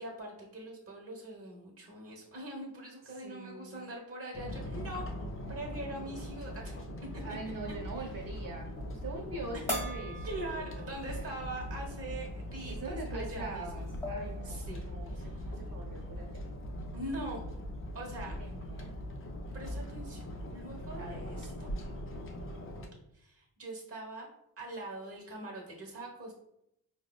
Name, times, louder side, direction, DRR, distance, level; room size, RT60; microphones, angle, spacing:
voice 1, 0.0-5.1 5.5-6.8 8.0-8.1 9.5-9.6 10.2-13.9 14.4-15.6 16.9-17.4 17.9-18.3 19.5-20.3 20.5-21.7 23.1-24.3 24.6-26.3, right 1 dB, 35° right, -2 dB, 0.9 m, -42 dB
voice 2, 3.2-3.9 7.2-11.6 12.6-16.4 18.4-19.0 21.0-21.2, right 3 dB, 55° right, -1 dB, 1.1 m, -43 dB
sound 1, 4.3-22.9, equal, 35° left, 0.4 m, -41 dB
sound 2, 9.7-11.3 11.7-11.8 13.3-13.4 13.8-14.4, equal, 5° left, 1.1 m, -39 dB
4.8 x 2.1 x 2.2 m, 0.78 s
wide cardioid pair, 140°, 39 cm